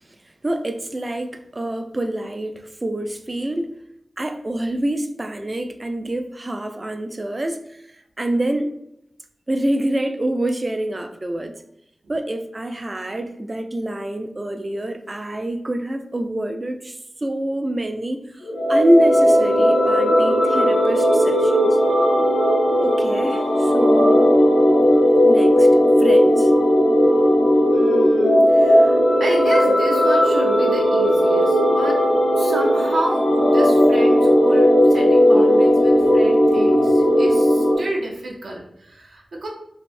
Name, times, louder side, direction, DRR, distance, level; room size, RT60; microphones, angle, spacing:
voice 1, 0.4-3.7 4.2-8.7 9.5-11.6 12.1-18.4 18.7-21.8 22.8-24.4 25.2-25.7 26.0-26.5, right 1 dB, 35° right, 0.3 m, -26 dB
sound 1, 18.4-37.8, equal, 75° left, 0.5 m, -16 dB
voice 2, 27.7-32.0 32.4-39.5, right 1 dB, 85° right, 0.6 m, -30 dB
3.2 x 2.5 x 2.5 m
wide cardioid pair, 60°, 0 cm